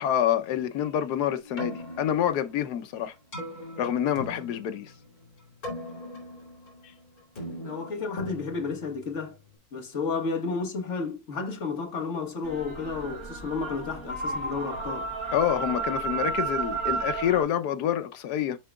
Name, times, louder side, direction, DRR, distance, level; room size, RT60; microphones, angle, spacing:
voice 1, 0.0-3.1 3.8-4.9 15.3-18.6, left 10 dB, 85° left, 1.3 m, -27 dB
Keyboard (musical), 1.4-9.6, left 1 dB, 65° left, 3.5 m, -41 dB
voice 2, 7.6-9.3 9.7-15.1, left 4 dB, 50° left, 1.7 m, -32 dB
sound 1, 12.4-17.4, right 4 dB, 65° right, 3.3 m, -32 dB
11.0 x 3.7 x 2.3 m
omnidirectional pair, 1.7 m